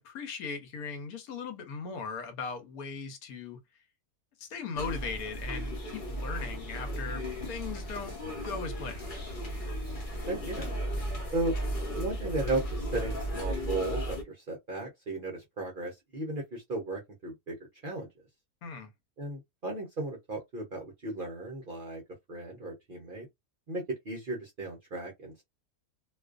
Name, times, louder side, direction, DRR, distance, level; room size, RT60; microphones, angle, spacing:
voice 1, 0.0-3.6 4.4-9.0 18.6-18.9, left 5 dB, 75° left, 1.1 m, -39 dB
sound 1, 4.8-14.2, equal, 40° left, 0.8 m, -35 dB
voice 2, 10.3-10.7 11.3-11.6 12.0-17.5 17.8-18.1 19.2-22.0 22.3-23.3 23.7-25.4, right 2 dB, 50° right, 0.6 m, -35 dB
2.5 x 2.3 x 2.3 m
omnidirectional pair, 1.6 m